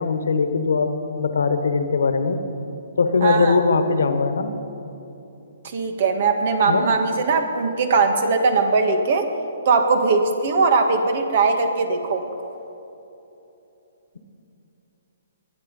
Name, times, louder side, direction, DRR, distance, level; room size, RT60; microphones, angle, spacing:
voice 1, 0.0-2.4 3.0-4.6 6.6-6.9, left 4 dB, 75° left, 9 dB, 1.4 m, -21 dB
voice 2, 3.2-3.5 5.7-9.3 9.7-12.3, right 4 dB, 55° right, 6 dB, 1.8 m, -20 dB
22.5 x 9.6 x 5.6 m, 3.0 s
hypercardioid pair, 140°, 0 cm